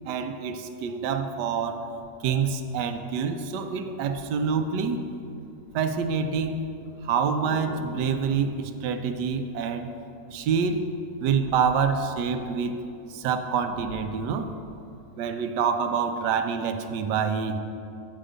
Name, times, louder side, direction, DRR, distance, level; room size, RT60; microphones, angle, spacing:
voice 1, 0.1-1.8 2.2-5.0 5.7-6.6 7.0-9.9 10.3-10.9 11.2-12.8 13.1-14.5 15.2-17.6, right 6 dB, 85° right, 8 dB, 1.3 m, -26 dB
sound 1, 2.0-3.5 4.2-4.4 4.7-5.2 5.5-8.4 9.5-10.0 10.3-12.6 12.9-13.0 13.3-14.5 15.1-15.2, left 2 dB, 60° left, 1.6 m, -45 dB
9.0 x 5.0 x 6.7 m, 2.6 s
omnidirectional pair, 1.8 m